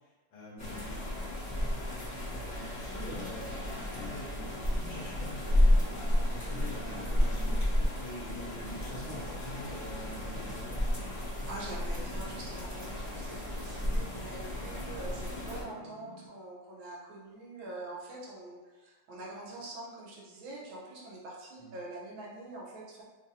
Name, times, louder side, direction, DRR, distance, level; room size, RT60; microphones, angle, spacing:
voice 1, 0.3-1.0 2.3-5.6 5.9-7.6 8.0-10.8 21.6-21.8, equal, 75° left, -4 dB, 1.6 m, -45 dB
sound 1, 0.6-15.6, left 1 dB, 15° left, 0.7 m, -32 dB
sound 2, 1.5-16.3, right 2 dB, 40° right, 0.9 m, -52 dB
sound 3, 2.8-9.7, left 4 dB, 55° left, 1.3 m, -49 dB
voice 2, 11.5-23.0, right 2 dB, 80° right, -4 dB, 1.6 m, -45 dB
4.1 x 2.6 x 2.6 m, 1.2 s
omnidirectional pair, 2.2 m